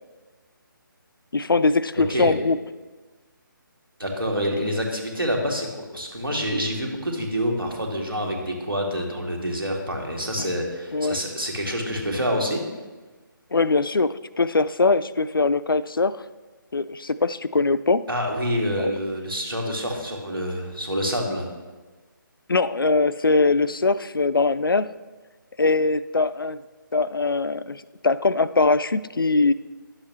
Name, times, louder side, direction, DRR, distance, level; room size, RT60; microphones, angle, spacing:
voice 1, 1.3-2.6 10.9-11.2 13.5-16.2 16.7-18.0 18.8-18.9 22.5-24.9 25.6-26.6 26.9-29.5, left 3 dB, 80° left, 15 dB, 0.4 m, -21 dB
voice 2, 2.0-2.3 4.0-12.6 18.1-21.5, equal, 80° right, 0 dB, 2.0 m, -27 dB
11.0 x 7.3 x 3.2 m, 1.3 s
figure-of-eight pair, 145°, 11 cm